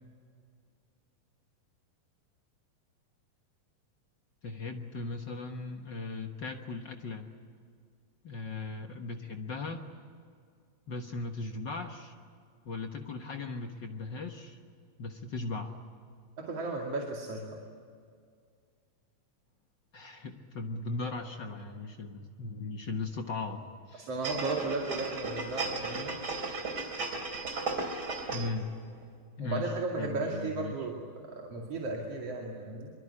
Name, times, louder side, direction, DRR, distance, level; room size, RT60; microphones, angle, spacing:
voice 1, 4.4-7.3 8.2-9.8 10.9-12.1 12.6-14.6 15.0-15.7 19.9-24.1 28.3-28.7 29.4-29.6 30.0-30.7, left 3 dB, 65° left, 4 dB, 1.1 m, -38 dB
voice 2, 16.4-17.5 24.0-26.1 29.4-32.9, right 3 dB, 45° right, 0 dB, 3.2 m, -35 dB
sound 1, 24.2-28.6 29.0-29.1, right 3 dB, 30° right, 3.7 m, -35 dB
25.0 x 24.0 x 9.9 m, 2.2 s
omnidirectional pair, 4.1 m